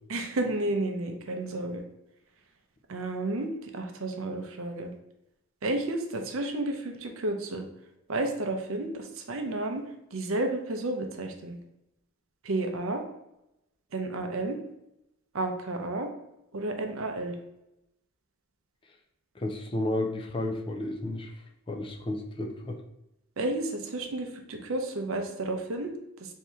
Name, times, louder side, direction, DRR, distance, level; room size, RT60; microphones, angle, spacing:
voice 1, 0.1-1.8 2.9-4.9 5.6-7.7 8.1-9.8 10.1-11.6 12.5-13.0 13.9-14.6 15.3-16.1 16.5-17.4 23.4-25.9, right 2 dB, 65° right, 4 dB, 0.6 m, -31 dB
voice 2, 19.4-21.3 21.7-22.8, left 1 dB, 25° left, 2 dB, 0.4 m, -32 dB
4.3 x 2.8 x 3.5 m, 0.88 s
head